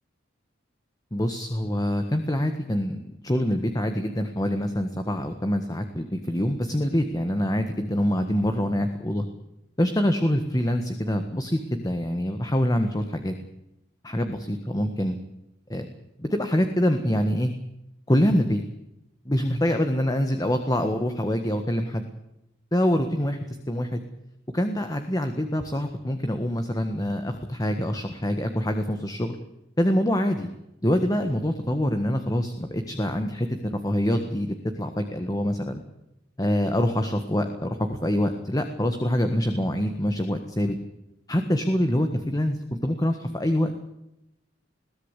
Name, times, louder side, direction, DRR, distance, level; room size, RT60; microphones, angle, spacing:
voice 1, 1.1-9.2 9.8-13.3 14.0-15.2 15.7-15.9 16.2-17.5 18.1-18.6 19.2-22.0 22.7-23.4 23.7-24.0 24.5-29.4 29.8-30.5 30.8-35.8 36.4-40.7 41.3-43.7, equal, 20° left, 6 dB, 1.6 m, -25 dB
22.0 x 17.0 x 8.3 m, 0.87 s
head